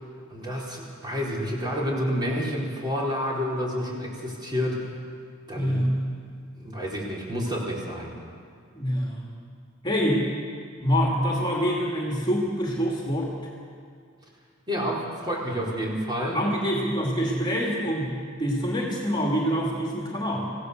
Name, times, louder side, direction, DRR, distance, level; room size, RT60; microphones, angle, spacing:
voice 1, 0.3-4.9 5.5-5.8 6.5-8.1 14.7-16.4, equal, 20° right, -4 dB, 4.3 m, -29 dB
voice 2, 5.5-6.0 8.7-9.2 9.8-10.3 10.8-13.3 16.3-20.5, equal, 20° left, -2 dB, 2.6 m, -25 dB
25.5 x 16.5 x 6.7 m, 2.2 s
head